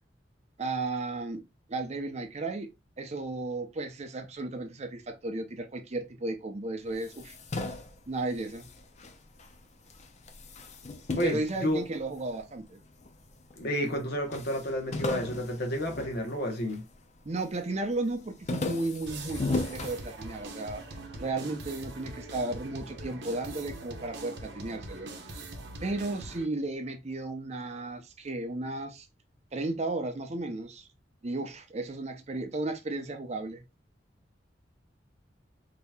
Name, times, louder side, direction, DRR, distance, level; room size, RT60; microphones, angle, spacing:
voice 1, 0.6-1.4 1.7-2.7 3.0-7.3 8.1-8.7 11.1-12.8 17.2-20.8 21.2-25.4 25.8-29.1 29.5-30.9 31.2-33.6, right 2 dB, 35° right, 0.6 m, -34 dB
sound 1, 6.9-9.6 9.9-12.4 13.0-13.7 13.9-14.0 14.3-16.9 17.3-17.7 18.1-20.7, left 2 dB, 40° left, 0.5 m, -36 dB
voice 2, 11.2-11.8 13.6-16.8, equal, 60° left, 1.1 m, -31 dB
sound 2, 19.1-26.5, right 2 dB, 70° right, 0.9 m, -42 dB
5.3 x 2.9 x 2.3 m
head